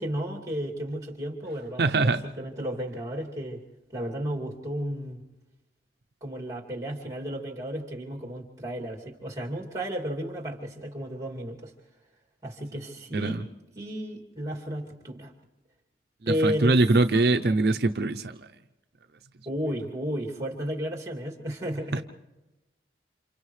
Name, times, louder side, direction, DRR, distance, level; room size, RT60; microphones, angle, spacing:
voice 1, 0.0-3.6 3.9-5.2 6.2-11.7 12.4-13.4 13.8-15.3 16.3-16.8 19.5-22.0, equal, 20° right, -1 dB, 2.6 m, -33 dB
voice 2, 1.8-2.2 13.1-13.4 16.2-18.3, right 2 dB, 60° right, 7 dB, 0.6 m, -23 dB
29.5 x 27.5 x 3.3 m, 1.1 s
head